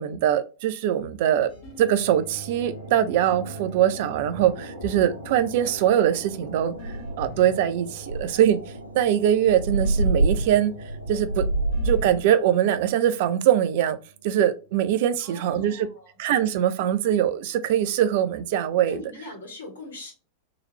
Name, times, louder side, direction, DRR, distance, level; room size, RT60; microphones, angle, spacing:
voice 1, 0.0-1.5 1.8-8.6 8.9-10.7 11.1-11.4 11.8-14.0 14.2-15.9 16.2-19.0, right 10 dB, 50° right, 0.4 m, -22 dB
sound 1, 1.4-14.8, right 1 dB, 80° right, 1.1 m, -42 dB
sound 2, 1.5-1.9 4.4-5.0 6.8-7.5 9.8-10.5 11.7-12.3, left 2 dB, 45° left, 1.9 m, -43 dB
sound 3, 5.4-5.5 5.8-6.1 6.4-6.5 6.8-7.5 8.0-12.2, right 2 dB, 85° left, 0.4 m, -26 dB
voice 2, 15.2-16.1 18.9-20.1, left 2 dB, 65° left, 1.5 m, -41 dB
3.8 x 3.0 x 3.0 m
figure-of-eight pair, 90°, 0 cm